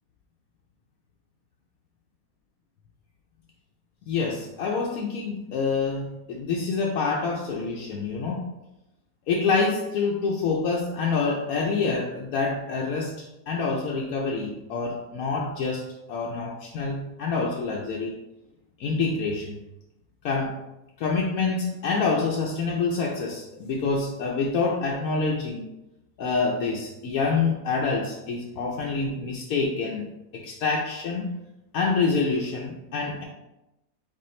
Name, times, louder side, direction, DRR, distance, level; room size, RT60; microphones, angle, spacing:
voice 1, 4.1-8.5 9.3-15.8 16.1-18.1 18.8-19.5 20.2-20.6 21.0-25.7 26.2-30.0 30.4-31.3 31.7-33.2, left 4 dB, 80° left, -2 dB, 1.1 m, -27 dB
4.3 x 4.0 x 3.1 m, 0.94 s
omnidirectional pair, 1.5 m